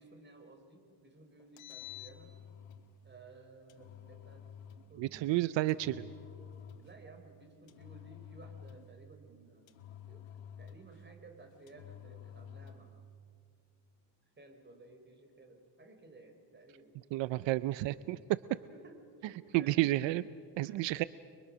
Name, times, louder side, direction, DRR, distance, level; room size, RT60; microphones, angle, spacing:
voice 1, 0.0-2.3 3.0-4.4 4.9-5.5 6.8-9.8 10.0-13.0 14.4-16.9 18.7-19.8 20.6-20.9, right 2 dB, 25° right, 5 dB, 3.6 m, -56 dB
Engine, 1.4-2.9 3.7-4.9 5.7-7.0 7.7-9.0 9.7-11.0 11.7-12.9, left 9 dB, 80° left, 1.9 m, -50 dB
voice 2, 5.0-6.1 17.1-18.4 19.5-20.2 20.6-21.0, right 17 dB, 80° right, 16 dB, 0.6 m, -31 dB
30.0 x 23.5 x 6.2 m, 2.4 s
cardioid pair, 120°, 44 cm